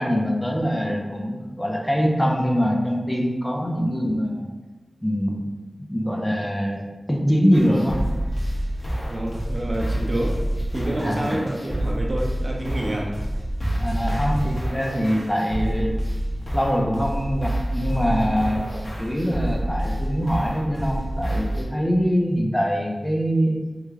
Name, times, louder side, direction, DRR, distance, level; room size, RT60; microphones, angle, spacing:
voice 1, 0.0-4.5 5.0-5.4 5.9-6.8 7.1-8.0 11.0-11.4 13.7-15.9 16.5-18.6 19.0-23.6, equal, 15° left, 0 dB, 0.5 m, -23 dB
sound 1, 7.5-21.6, right 1 dB, 35° left, 0.9 m, -27 dB
voice 2, 9.1-10.4 10.7-13.1, right 1 dB, 40° right, -2 dB, 0.7 m, -28 dB
3.1 x 2.2 x 3.5 m, 1.2 s
wide cardioid pair, 85°, 0 cm